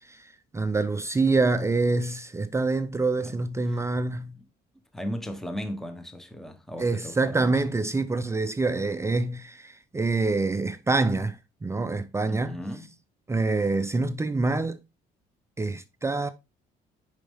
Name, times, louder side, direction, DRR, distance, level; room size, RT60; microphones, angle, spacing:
voice 1, 0.0-4.4 6.8-12.5 13.3-14.8 15.6-16.3, right 3 dB, 15° right, 0.5 m, -26 dB
voice 2, 4.9-7.6 12.3-12.9, equal, ahead, 0.9 m, -36 dB
6.9 x 5.3 x 3.6 m
cardioid pair, 110°, 17 cm